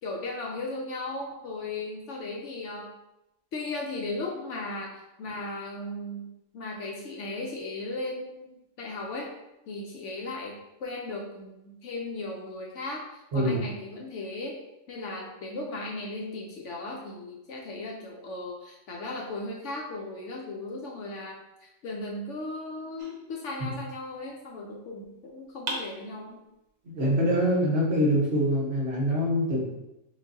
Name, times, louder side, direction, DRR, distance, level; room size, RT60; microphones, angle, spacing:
voice 1, 0.0-2.9 3.5-9.3 9.7-13.0 13.3-14.6 14.9-26.4, left 2 dB, 65° left, -1 dB, 0.9 m, -36 dB
sound 1, 23.0-24.1 25.7-26.7, right 2 dB, 80° right, 1.2 m, -40 dB
voice 2, 26.8-29.6, equal, 50° right, -5 dB, 1.4 m, -24 dB
5.6 x 2.6 x 2.6 m, 0.90 s
omnidirectional pair, 1.5 m